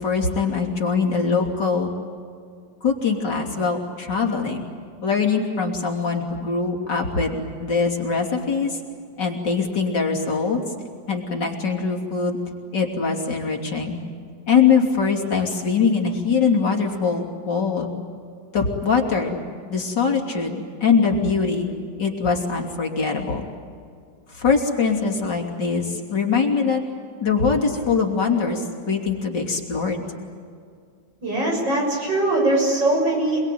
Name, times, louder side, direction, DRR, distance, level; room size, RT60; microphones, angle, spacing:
voice 1, 0.0-1.9 2.8-4.7 5.0-8.8 9.2-10.6 11.1-12.4 12.7-14.0 14.5-17.9 18.5-19.4 19.7-21.7 22.0-23.5 24.3-26.8 27.2-30.0, left 5 dB, 65° left, 0 dB, 3.7 m, -22 dB
voice 2, 31.2-33.4, right 2 dB, 75° right, 0 dB, 7.4 m, -21 dB
27.5 x 21.0 x 9.3 m, 2.2 s
omnidirectional pair, 2.0 m